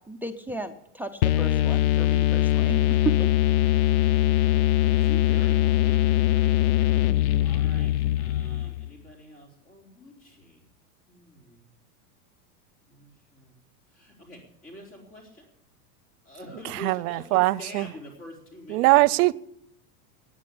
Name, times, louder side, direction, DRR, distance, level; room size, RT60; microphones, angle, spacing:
voice 1, 0.1-2.8 3.0-3.3, right 3 dB, 5° right, 0.4 m, -34 dB
sound 1, 1.2-8.9, left 13 dB, 75° left, 0.6 m, -22 dB
voice 2, 4.7-6.6 7.4-10.6 11.1-11.7 12.9-13.6 13.9-15.5 16.2-19.2, equal, 30° left, 4.1 m, -45 dB
voice 3, 16.8-17.9 18.7-19.3, right 22 dB, 70° right, 0.7 m, -21 dB
9.7 x 9.3 x 9.9 m
supercardioid pair, 135°, 45 cm